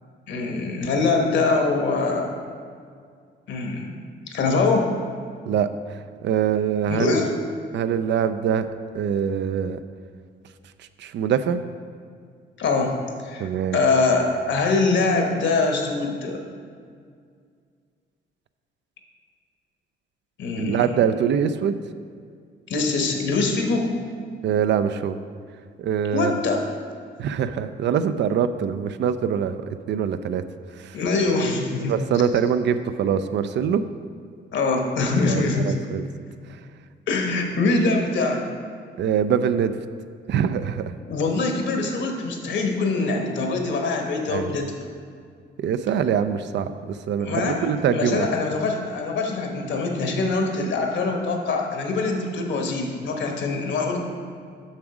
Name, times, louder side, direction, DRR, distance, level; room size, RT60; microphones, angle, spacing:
voice 1, 0.3-2.3 3.5-4.0 4.3-4.9 6.9-7.3 12.6-12.9 13.2-16.4 20.4-20.8 22.7-23.9 26.1-26.6 30.9-31.9 34.5-35.7 37.1-38.4 41.1-44.7 47.2-54.0, left 3 dB, 65° left, 3 dB, 1.2 m, -23 dB
voice 2, 5.5-7.2 7.7-8.7 8.9-9.8 10.8-11.6 13.4-14.1 20.6-21.8 24.4-25.2 25.8-26.3 27.2-30.4 30.7-31.0 31.9-33.8 35.3-36.0 36.5-36.6 39.0-39.8 40.3-40.9 44.3-44.6 45.6-48.3, right 8 dB, 65° right, 11 dB, 0.4 m, -24 dB
7.3 x 6.1 x 4.8 m, 2.1 s
cardioid pair, 90°, 20 cm